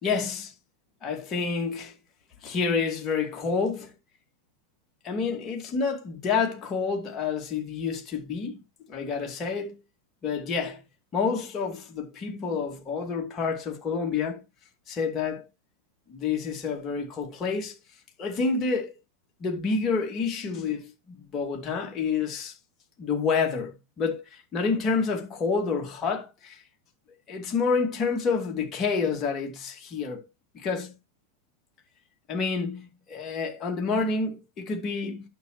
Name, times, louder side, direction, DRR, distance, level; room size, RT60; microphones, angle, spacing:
voice 1, 0.0-0.5 1.0-1.9 2.4-3.9 5.0-8.6 8.9-9.8 10.2-10.8 11.1-14.4 14.9-15.4 16.1-17.8 18.2-18.9 19.4-22.5 23.0-26.6 27.3-30.3 30.5-30.9 32.3-35.2, left 5 dB, 25° left, 2.4 m, -28 dB
11.0 x 6.3 x 3.1 m
figure-of-eight pair, 90°, 0 cm